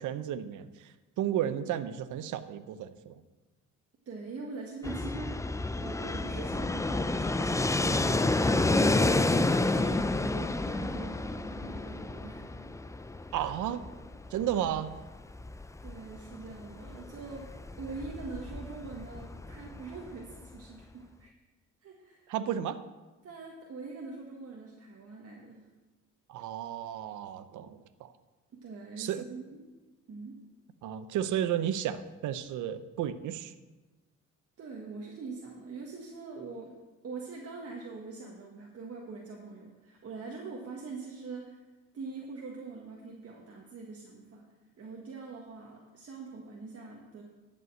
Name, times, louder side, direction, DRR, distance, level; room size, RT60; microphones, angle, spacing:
voice 1, 0.0-3.2 13.3-13.8 14.3-14.9 22.3-22.8 26.3-28.1 29.0-29.2 30.8-33.5, right 10 dB, 80° right, 13 dB, 0.7 m, -33 dB
voice 2, 4.0-8.7 9.4-12.5 15.8-17.5 17.8-21.3 21.8-22.3 23.2-25.7 28.5-29.6 30.1-30.4 34.6-36.7 37.0-41.7 41.9-44.4 44.8-47.2, right 4 dB, 50° right, -1 dB, 1.6 m, -43 dB
Fixed-wing aircraft airplane, 4.8-20.6, left 2 dB, 10° left, 0.4 m, -30 dB
11.0 x 5.4 x 7.7 m, 1.2 s
cardioid pair, 90°, 30 cm